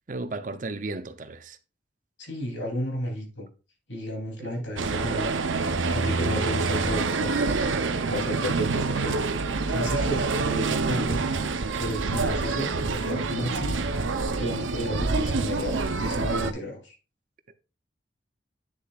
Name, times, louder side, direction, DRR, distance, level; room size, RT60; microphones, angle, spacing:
voice 1, 0.1-1.6 4.4-4.6, right 2 dB, 40° right, 0.5 m, -35 dB
voice 2, 2.2-3.5 3.9-5.3 5.9-7.5 8.1-9.2 9.7-11.2 11.8-13.8 14.4-16.9, left 1 dB, 75° left, 3.1 m, -32 dB
sound 1, 4.8-16.5, right 3 dB, 85° right, 0.7 m, -26 dB
9.7 x 6.6 x 2.4 m
head